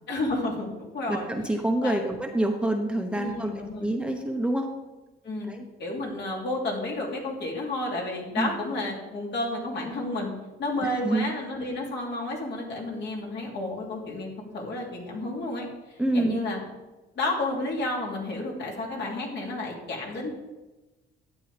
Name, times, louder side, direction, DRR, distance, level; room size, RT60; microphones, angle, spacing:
voice 1, 0.1-1.3 1.8-2.0 3.1-3.9 5.2-5.5 5.8-10.3 10.6-16.6 17.1-20.3, left 2 dB, 60° left, -2 dB, 3.0 m, -31 dB
voice 2, 1.1-4.7 5.5-5.6 8.4-8.6 11.0-11.3 16.0-16.4, right 1 dB, 5° right, 2 dB, 1.1 m, -27 dB
11.5 x 8.5 x 3.5 m, 1.1 s
cardioid pair, 90°, 20 cm